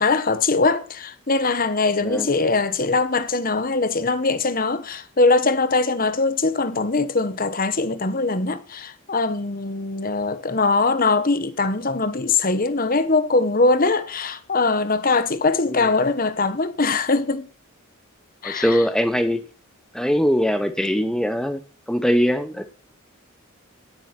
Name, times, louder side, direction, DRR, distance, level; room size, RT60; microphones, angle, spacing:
voice 1, 0.0-17.5 18.4-18.8, left 3 dB, 40° left, 1.1 m, -21 dB
voice 2, 18.4-19.4 19.9-21.6 21.9-22.7, equal, 5° left, 0.7 m, -21 dB
16.5 x 7.5 x 5.9 m
head